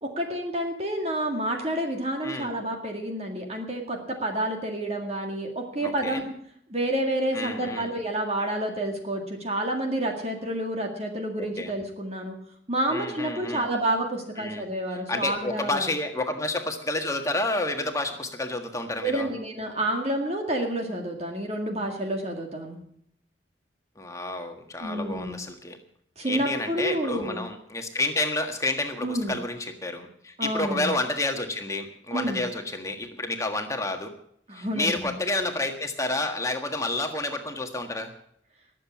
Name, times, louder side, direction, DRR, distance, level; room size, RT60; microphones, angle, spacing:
voice 1, 0.0-6.3 6.7-12.4 12.7-15.9 19.0-22.8 24.8-25.4 26.2-27.4 29.0-29.3 30.4-30.9 32.1-32.4 34.5-34.9, right 1 dB, 35° right, 2 dB, 1.9 m, -29 dB
voice 2, 5.8-6.2 7.3-7.9 11.4-11.7 12.9-13.7 14.4-14.6 14.9-19.3 24.0-25.8 26.2-34.1 34.5-38.1, left 2 dB, 15° left, 5 dB, 1.6 m, -30 dB
20.5 x 7.6 x 7.3 m, 0.71 s
head